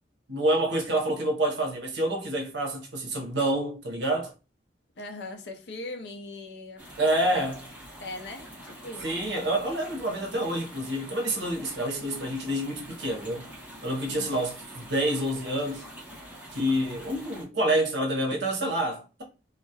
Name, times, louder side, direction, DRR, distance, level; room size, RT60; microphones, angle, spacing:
voice 1, 0.3-4.3 7.0-7.6 9.0-13.5 13.8-15.8 16.5-19.2, right 1 dB, 70° right, 0.7 m, -28 dB
voice 2, 5.0-6.8 7.3-7.5 8.0-9.3 14.1-14.4, left 2 dB, 70° left, 0.5 m, -40 dB
sound 1, 6.8-17.4, equal, 10° right, 1.1 m, -45 dB
2.3 x 2.0 x 2.7 m
head